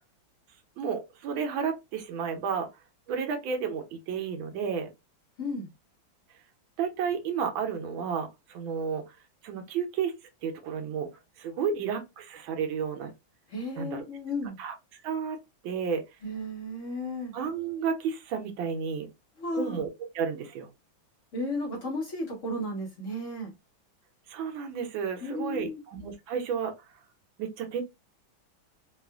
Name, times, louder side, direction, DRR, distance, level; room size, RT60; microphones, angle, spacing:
voice 1, 0.8-2.7 3.1-4.9 6.8-9.0 9.4-10.1 10.4-11.1 11.4-13.1 13.8-14.0 14.6-14.7 15.0-15.4 15.6-16.0 17.3-19.1 19.5-19.9 20.1-20.7 24.3-26.7 27.4-27.8, right 6 dB, 85° right, 1.5 m, -32 dB
voice 2, 5.4-5.7 13.5-14.6 16.2-17.3 19.4-19.8 21.3-23.5 25.2-25.8, left 1 dB, 50° left, 1.1 m, -34 dB
3.6 x 2.3 x 2.3 m
omnidirectional pair, 2.1 m